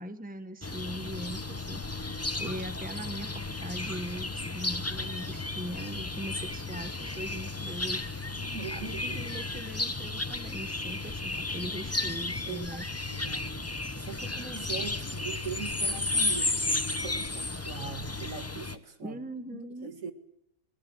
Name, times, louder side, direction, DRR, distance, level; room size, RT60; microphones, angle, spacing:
voice 1, 0.0-1.8 2.4-8.1 8.7-12.8 19.0-19.9, right 1 dB, 5° right, 1.3 m, -40 dB
sound 1, 0.6-18.8, left 2 dB, 15° left, 0.7 m, -33 dB
voice 2, 2.4-2.8 8.3-9.2 12.5-12.7 13.1-13.7 14.0-19.2 19.5-20.1, right 6 dB, 65° right, 2.3 m, -41 dB
24.0 x 19.0 x 7.8 m
omnidirectional pair, 1.5 m